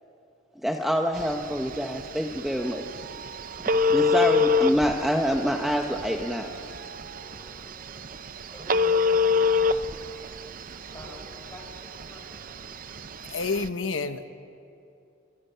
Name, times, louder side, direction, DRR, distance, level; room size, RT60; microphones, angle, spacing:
voice 1, 0.6-3.0 3.9-6.5, equal, ahead, 2 dB, 1.0 m, -26 dB
Telephone, 1.2-13.7, left 4 dB, 45° right, 0.6 m, -27 dB
sound 1, 2.6-10.6 10.8-12.6, right 3 dB, 75° right, 4.1 m, -48 dB
voice 2, 8.5-9.9 10.9-12.6, equal, 15° left, -1 dB, 6.0 m, -46 dB
voice 3, 13.3-14.3, left 4 dB, 85° left, 9 dB, 1.0 m, -29 dB
30.0 x 26.5 x 5.7 m, 2.6 s
head